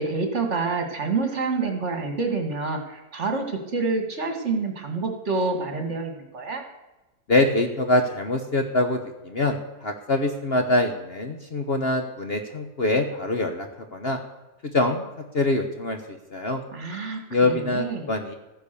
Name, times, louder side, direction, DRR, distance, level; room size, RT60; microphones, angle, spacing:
voice 1, 0.0-6.6 16.7-18.1, right 4 dB, 45° right, 5 dB, 2.3 m, -27 dB
voice 2, 7.3-9.0 9.2-14.2 14.7-15.0 15.3-16.6 17.3-18.3, left 2 dB, 40° left, 5 dB, 1.2 m, -24 dB
14.5 x 10.0 x 6.8 m, 1.1 s
omnidirectional pair, 1.7 m